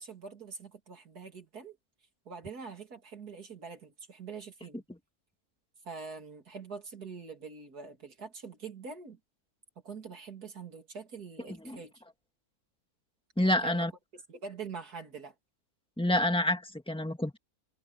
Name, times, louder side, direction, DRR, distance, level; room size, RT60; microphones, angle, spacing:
voice 1, 0.0-1.8 2.3-4.8 5.8-9.2 9.8-11.9 13.6-13.9 14.1-15.3, right 5 dB, 75° right, 3.5 m, -44 dB
voice 2, 13.4-13.9 16.0-17.4, left 1 dB, 5° left, 2.2 m, -28 dB
omnidirectional pair, 1.7 m